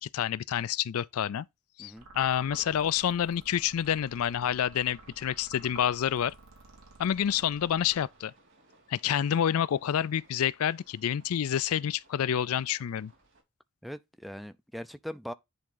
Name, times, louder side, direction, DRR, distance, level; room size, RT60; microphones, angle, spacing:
voice 1, 0.0-1.5 1.8-6.3 7.0-8.3 8.9-13.1, left 9 dB, 70° left, 0.4 m, -28 dB
sound 1, 2.0-8.5, right 2 dB, 75° right, 2.1 m, -52 dB
sound 2, 4.7-13.4, right 2 dB, 55° right, 3.3 m, -63 dB
voice 2, 13.8-15.3, equal, ahead, 0.4 m, -40 dB
10.0 x 3.6 x 3.8 m
head